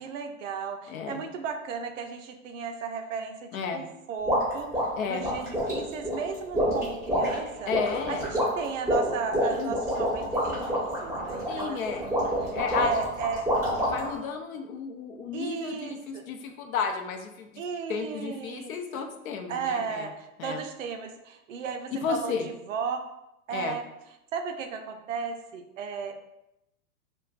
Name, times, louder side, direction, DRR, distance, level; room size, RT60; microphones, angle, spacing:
voice 1, 0.0-4.7 5.1-7.7 8.1-13.5 15.3-16.2 17.6-19.1 19.5-22.3 22.7-23.0 23.5-23.8 24.3-26.2, right 6 dB, 60° right, 6 dB, 0.5 m, -35 dB
voice 2, 0.9-1.2 3.5-3.8 5.0-5.2 7.7-8.3 9.4-9.7 11.5-12.9 13.9-17.6 17.9-20.1 20.4-20.6 21.9-22.5 23.5-23.8, left 6 dB, 65° left, 5 dB, 0.6 m, -33 dB
sound 1, 4.3-14.2, equal, 5° right, 1.4 m, -28 dB
4.4 x 2.2 x 2.4 m, 0.88 s
supercardioid pair, 170°, 44 cm